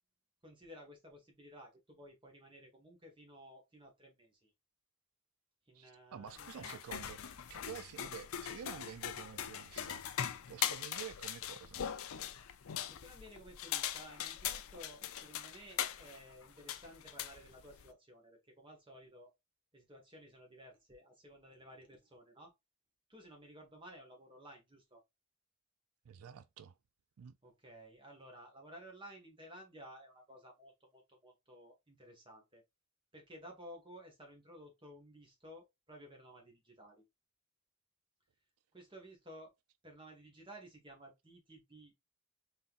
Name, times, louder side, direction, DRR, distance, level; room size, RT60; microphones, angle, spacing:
voice 1, 0.4-4.5 5.7-7.0 12.9-19.3 19.7-22.5 23.1-25.0 27.4-32.6 33.1-37.0 38.7-39.5 39.8-41.9, equal, 20° right, 1.6 m, -55 dB
voice 2, 5.7-10.1 10.5-11.9 26.1-26.8 27.2-27.4, right 8 dB, 90° right, 0.4 m, -49 dB
sound 1, 6.3-17.9, left 10 dB, 80° left, 0.5 m, -41 dB
4.1 x 3.9 x 2.5 m
head